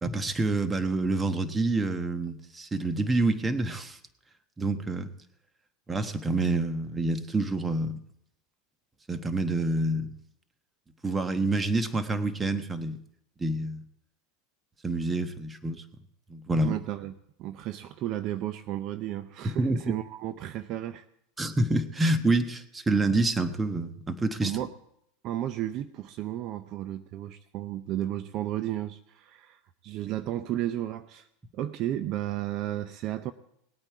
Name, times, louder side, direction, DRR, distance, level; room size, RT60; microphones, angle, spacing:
voice 1, 0.0-4.0 4.6-5.1 5.9-8.0 9.1-10.2 11.0-13.0 13.4-13.8 14.8-15.8 16.3-16.8 19.4-19.8 21.4-24.6, right 2 dB, 15° right, 10 dB, 1.1 m, -27 dB
voice 2, 16.5-21.1 24.4-24.7 25.2-31.3 31.5-33.3, right 13 dB, 50° right, 12 dB, 0.6 m, -33 dB
19.5 x 8.9 x 4.7 m, 0.73 s
hypercardioid pair, 110°, 0 cm